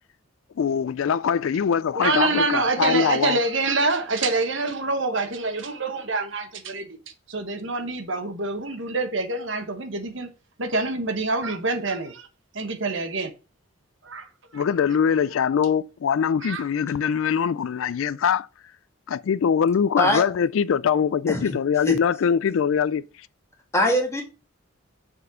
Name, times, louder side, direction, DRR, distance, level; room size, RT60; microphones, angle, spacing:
voice 1, 0.6-3.4 14.5-18.5 19.1-23.0, left 7 dB, 70° left, 0.3 m, -22 dB
voice 2, 1.9-7.0 7.3-10.3 10.6-12.3 12.5-13.3 14.0-14.6 16.4-16.6, right 3 dB, 60° right, 1.2 m, -26 dB
voice 3, 23.7-24.2, left 1 dB, 15° left, 1.9 m, -22 dB
6.8 x 4.3 x 6.2 m
head